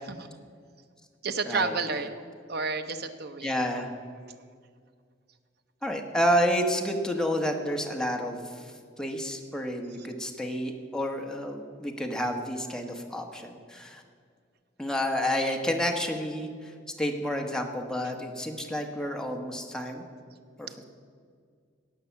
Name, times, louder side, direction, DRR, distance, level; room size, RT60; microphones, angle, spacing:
voice 1, 0.1-0.4 1.2-2.1 2.5-3.5, right 4 dB, 60° right, 8 dB, 0.9 m, -30 dB
voice 2, 3.4-3.9 5.8-14.0 14.8-16.7 17.0-20.0 20.6-20.8, equal, 5° left, 2 dB, 1.2 m, -30 dB
17.5 x 5.9 x 6.9 m, 2.1 s
head